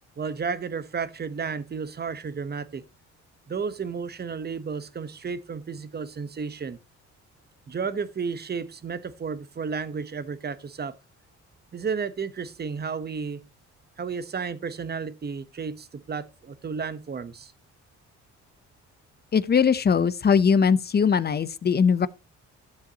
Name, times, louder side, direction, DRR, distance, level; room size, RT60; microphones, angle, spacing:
voice 1, 0.2-2.8 3.5-6.8 7.7-10.9 11.7-13.4 14.0-17.5, right 5 dB, 35° right, 1.0 m, -32 dB
voice 2, 19.3-22.1, left 6 dB, 35° left, 0.7 m, -20 dB
13.0 x 7.3 x 2.8 m
cardioid pair, 90°, 30 cm